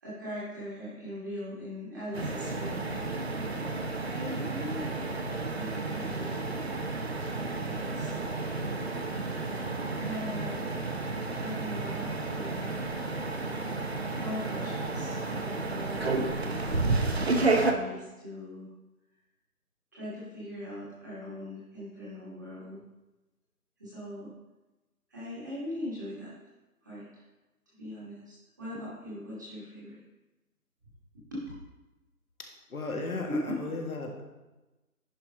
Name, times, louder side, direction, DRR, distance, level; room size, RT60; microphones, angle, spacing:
voice 1, 0.0-3.2 4.0-5.1 5.4-6.4 7.7-8.2 10.0-10.7 11.4-12.8 14.2-18.7 19.9-22.8 23.8-24.3 25.1-26.3 26.8-27.2 27.8-30.0 31.1-31.4 33.3-33.5, left 1 dB, 10° right, -10 dB, 1.4 m, -40 dB
sound 1, 2.1-17.7, right 3 dB, 45° right, 0.8 m, -31 dB
voice 2, 32.4-34.2, left 3 dB, 65° left, 1 dB, 1.8 m, -36 dB
10.5 x 4.3 x 5.1 m, 1.1 s
figure-of-eight pair, 165°, 46 cm